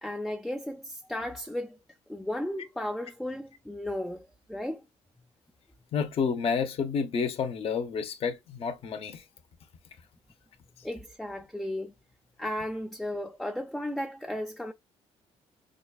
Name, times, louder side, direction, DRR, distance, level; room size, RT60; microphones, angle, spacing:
voice 1, 0.0-1.8 2.1-4.8 10.8-11.9 12.4-14.7, left 1 dB, ahead, 0.5 m, -35 dB
voice 2, 5.9-9.2, left 6 dB, 50° left, 0.9 m, -30 dB
5.1 x 2.2 x 2.3 m
cardioid pair, 95°, 12 cm